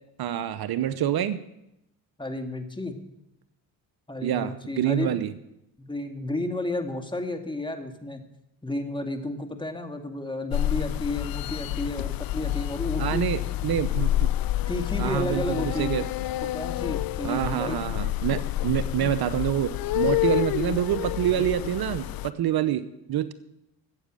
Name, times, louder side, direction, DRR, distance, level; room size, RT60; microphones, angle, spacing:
voice 1, 0.2-1.4 4.2-5.3 13.0-14.3 15.0-16.1 17.2-23.3, right 10 dB, 60° right, 14 dB, 0.9 m, -27 dB
voice 2, 2.2-2.9 4.1-5.1 5.8-8.2 8.6-13.2 14.7-16.0 16.4-17.8, left 1 dB, 10° left, 5 dB, 2.2 m, -32 dB
sound 1, 10.5-22.3, left 14 dB, 55° left, 0.6 m, -28 dB
14.0 x 8.2 x 7.7 m, 0.86 s
supercardioid pair, 60°, 42 cm